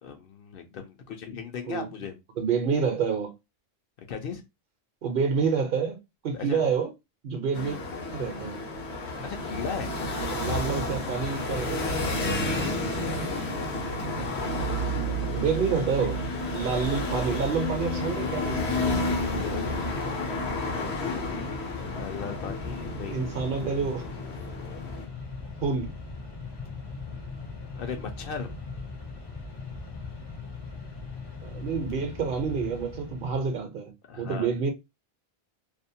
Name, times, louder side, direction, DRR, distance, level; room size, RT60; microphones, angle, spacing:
voice 1, 0.0-2.2 4.1-4.4 6.3-6.7 9.2-10.0 15.2-15.4 19.3-19.8 21.9-23.2 27.5-28.5 34.1-34.6, left 6 dB, 65° left, 0.7 m, -37 dB
voice 2, 2.4-3.3 5.0-6.0 6.2-6.9 7.2-7.8 8.1-8.6 10.3-11.8 12.4-12.8 15.3-16.2 16.5-18.6 23.1-24.0 25.6-26.0 31.4-33.9 34.2-34.7, right 5 dB, 60° right, 0.7 m, -28 dB
sound 1, 7.5-25.1, left 1 dB, 85° left, 1.1 m, -31 dB
Mechanisms, 14.2-33.6, left 4 dB, 35° left, 0.4 m, -40 dB
2.5 x 2.0 x 2.6 m
omnidirectional pair, 1.1 m